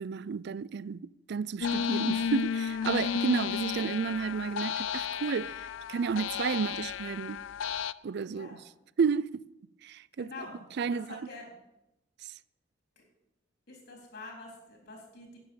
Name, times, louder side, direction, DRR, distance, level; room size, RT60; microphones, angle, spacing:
voice 1, 0.0-7.4 8.0-8.5 9.0-9.4 9.8-10.3 10.8-11.2 12.3-12.4, right 5 dB, 60° right, 0.4 m, -32 dB
sound 1, 1.6-7.9, left 7 dB, 80° left, 0.4 m, -33 dB
voice 2, 8.3-8.6 10.2-11.5 13.0-13.1 13.7-15.4, left 3 dB, 55° left, 4.0 m, -46 dB
11.0 x 8.9 x 7.1 m
head